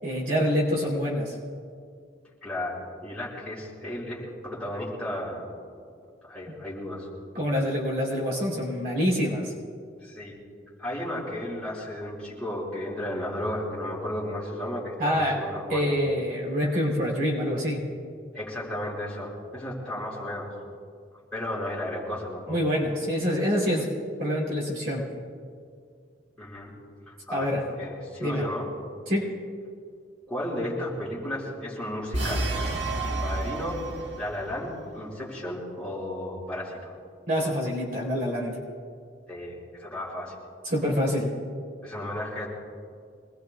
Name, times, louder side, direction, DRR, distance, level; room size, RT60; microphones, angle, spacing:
voice 1, 0.0-1.3 7.3-9.5 15.0-15.4 15.7-17.8 22.5-23.9 24.2-25.0 27.3-27.6 28.2-28.5 29.1-29.3 37.3-38.6 40.6-41.3, equal, 50° right, -3 dB, 3.5 m, -26 dB
voice 2, 2.4-5.5 6.3-7.1 10.0-10.4 10.8-15.9 18.3-20.5 21.3-22.6 26.4-26.7 27.1-27.5 27.8-28.7 30.3-32.5 33.0-33.8 34.2-36.9 39.3-40.3 41.8-42.5, left 1 dB, 5° left, -7 dB, 5.3 m, -34 dB
sound 1, 32.1-34.4, right 2 dB, 70° right, 1.4 m, -29 dB
26.0 x 20.0 x 2.4 m, 2.2 s
head